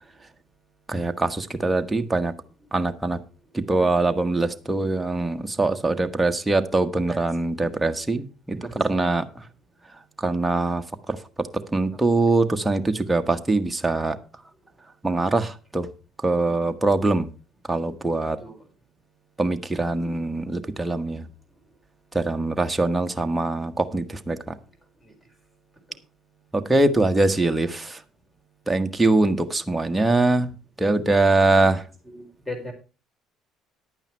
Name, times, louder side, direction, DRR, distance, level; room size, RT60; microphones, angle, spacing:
voice 1, 0.9-2.3 2.7-3.2 3.5-9.3 10.2-14.2 15.0-15.9 16.2-17.3 17.7-18.4 19.4-21.3 22.1-24.6 26.5-28.0 28.7-30.5 30.8-31.9, right 2 dB, 10° right, 6 dB, 1.3 m, -23 dB
voice 2, 8.5-9.0 18.4-18.6 32.0-32.7, left 1 dB, 5° left, 6 dB, 4.3 m, -37 dB
11.0 x 9.0 x 4.5 m, 0.32 s
supercardioid pair, 80°, 0 cm